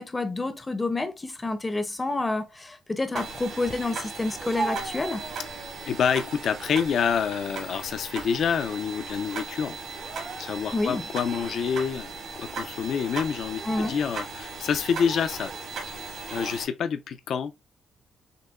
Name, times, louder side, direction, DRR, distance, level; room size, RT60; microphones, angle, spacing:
voice 1, 0.0-5.3 10.7-11.0 13.6-14.0, left 2 dB, 20° left, 0.6 m, -29 dB
sound 1, 3.2-16.7, right 4 dB, 70° right, 1.8 m, -37 dB
Speech, 4.2-5.9 6.4-7.0 7.4-8.6 8.9-9.1 9.9-10.9 11.4-11.6 12.3-12.6 13.4-14.1 14.9-15.6, right 4 dB, 45° right, 0.6 m, -38 dB
voice 2, 5.9-9.7 10.4-15.5 15.9-16.0 16.3-17.5, left 7 dB, 65° left, 0.5 m, -27 dB
6.5 x 2.2 x 2.3 m
cardioid pair, 90°, 0 cm